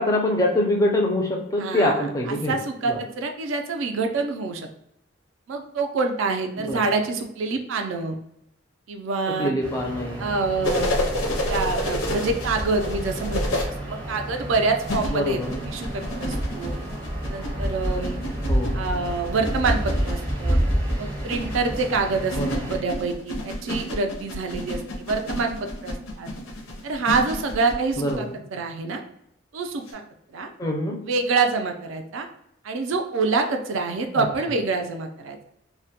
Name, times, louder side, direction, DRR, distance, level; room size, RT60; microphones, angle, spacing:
voice 1, 0.0-2.6 2.9-3.0 6.6-6.8 9.4-10.3 15.1-15.6 18.5-18.9 22.4-22.6 28.0-28.3 30.6-31.0 34.2-34.3, left 1 dB, 15° left, 0 dB, 0.4 m, -24 dB
voice 2, 1.6-4.7 5.5-8.2 8.9-9.5 10.2-11.0 11.2-15.4 15.7-16.7 17.3-18.2 18.7-20.6 21.0-26.3 26.8-29.0 29.5-30.0 30.3-30.5 31.0-32.3 32.6-35.4, right 4 dB, 70° right, 5 dB, 0.4 m, -26 dB
sound 1, 9.6-22.8, equal, 20° right, 0.6 m, -29 dB
sound 2, 10.6-13.6 14.8-28.2 29.9-30.0, left 1 dB, 80° left, 0.5 m, -30 dB
2.2 x 2.1 x 2.7 m, 0.77 s
head